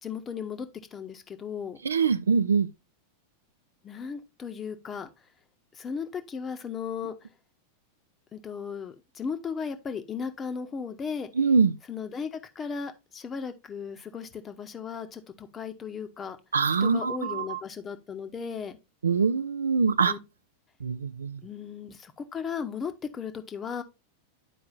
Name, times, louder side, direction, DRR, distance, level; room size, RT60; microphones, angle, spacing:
voice 1, 0.0-1.8 3.8-5.1 5.8-7.1 8.3-11.3 11.9-16.4 16.8-18.8 20.1-20.2 21.4-23.8, left 6 dB, 20° left, 0.8 m, -36 dB
voice 2, 1.8-2.7 11.4-11.8 16.5-17.6 19.0-20.1 20.8-21.4, right 5 dB, 70° right, 0.3 m, -24 dB
11.0 x 4.7 x 2.4 m
figure-of-eight pair, 90°, 0 cm